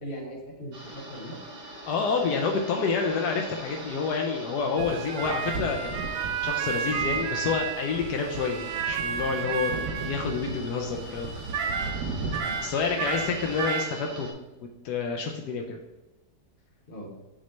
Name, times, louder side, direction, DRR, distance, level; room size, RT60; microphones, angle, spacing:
voice 1, 0.0-1.4 9.6-10.0 12.4-12.6 16.9-17.1, equal, 35° left, -5 dB, 1.4 m, -40 dB
sound 1, 0.7-14.3, right 1 dB, 40° right, 1.6 m, -43 dB
voice 2, 1.8-9.7 10.0-11.4 12.6-14.3 14.6-15.8, left 5 dB, 80° left, 2 dB, 1.3 m, -29 dB
sound 2, 4.8-13.9, right 6 dB, 70° right, 1.0 m, -31 dB
6.3 x 3.2 x 5.7 m, 1.1 s
omnidirectional pair, 1.7 m